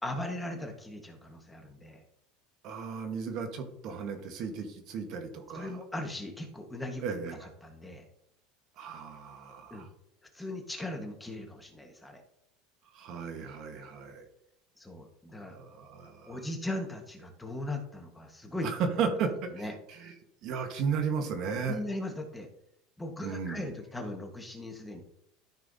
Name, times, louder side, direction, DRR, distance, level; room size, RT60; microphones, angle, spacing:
voice 1, 0.0-2.0 5.5-7.0 7.4-8.0 9.7-9.9 10.3-12.2 14.8-15.6 16.3-18.7 19.5-19.7 21.7-22.5 23.0-25.0, left 1 dB, 5° left, 2 dB, 1.3 m, -38 dB
voice 2, 2.6-5.8 7.0-7.5 8.8-9.9 12.9-14.3 15.4-16.4 18.6-20.1 20.4-21.8 23.2-23.7, right 6 dB, 50° right, 6 dB, 1.3 m, -35 dB
13.0 x 5.6 x 2.7 m, 0.76 s
supercardioid pair, 135°, 0 cm